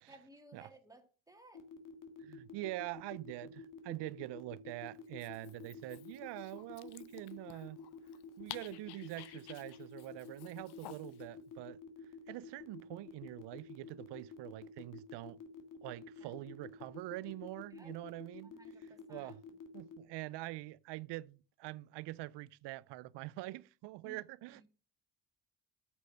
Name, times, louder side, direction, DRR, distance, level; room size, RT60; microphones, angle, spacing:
voice 1, 0.1-1.6 16.2-16.4 17.7-18.0 18.4-19.4 24.0-24.6, right 1 dB, 10° right, 1.9 m, -59 dB
sound 1, 1.5-20.0, left 6 dB, 50° left, 1.8 m, -50 dB
voice 2, 2.2-7.8 8.4-11.8 12.3-15.4 15.8-18.5 19.1-19.4 19.7-24.7, right 18 dB, 90° right, 0.5 m, -45 dB
Dog, 5.0-11.3, left 15 dB, 70° left, 0.6 m, -53 dB
8.2 x 6.4 x 6.7 m
cardioid pair, 85°, 40 cm